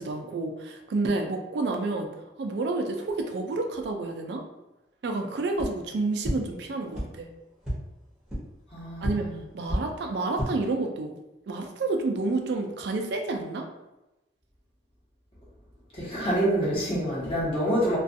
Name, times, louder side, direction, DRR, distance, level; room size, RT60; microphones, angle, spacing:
voice 1, 0.0-2.1 2.4-4.4 5.0-7.3 9.0-11.2 11.5-13.7, right 3 dB, 75° right, 4 dB, 0.4 m, -29 dB
sound 1, 5.5-5.7 6.2-6.3 6.9-7.0 7.6-7.7 8.3-8.4 9.0-9.1 9.6-9.8 10.2-10.5, equal, 5° right, 0.8 m, -28 dB
voice 2, 8.7-9.4 15.9-18.0, right 1 dB, 30° left, -8 dB, 1.0 m, -27 dB
2.4 x 2.3 x 2.6 m, 0.97 s
head